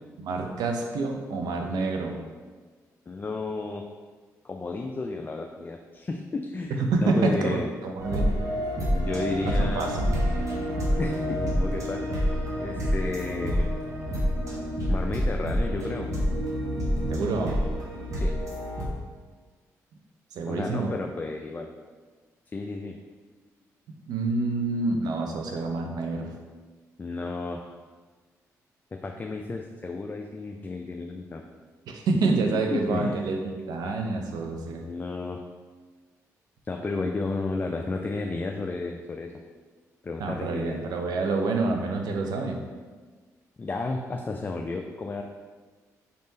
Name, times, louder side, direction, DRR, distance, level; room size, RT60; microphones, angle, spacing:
voice 1, 0.2-2.2 6.8-8.6 9.6-10.1 17.1-17.6 20.3-20.9 24.1-26.3 31.9-34.8 40.2-42.6, right 3 dB, 80° right, 2 dB, 0.5 m, -27 dB
voice 2, 3.1-3.8 4.4-7.7 8.9-10.0 11.0-12.1 12.6-13.7 14.9-16.1 18.2-18.3 20.5-21.7 22.5-23.0 27.0-27.7 29.0-31.4 32.7-33.3 34.8-35.4 36.7-39.3 40.0-40.8 43.6-45.2, left 3 dB, 30° left, 2 dB, 0.3 m, -32 dB
sound 1, 8.0-18.9, equal, 55° right, 1.1 m, -27 dB
4.0 x 3.6 x 2.7 m, 1.4 s
supercardioid pair, 60°, 7 cm